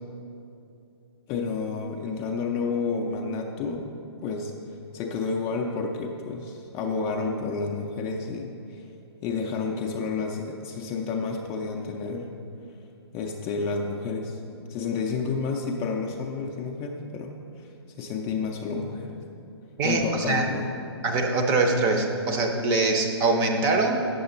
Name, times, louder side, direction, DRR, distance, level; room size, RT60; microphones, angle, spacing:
voice 1, 1.3-3.9 4.2-4.6 4.9-8.5 9.2-12.3 13.1-17.7 18.0-19.1 19.8-20.7, left 4 dB, 20° left, 2 dB, 0.5 m, -30 dB
voice 2, 19.8-20.5 21.0-24.1, right 3 dB, 20° right, 4 dB, 0.6 m, -23 dB
8.6 x 6.9 x 4.0 m, 2.7 s
figure-of-eight pair, 130°, 14 cm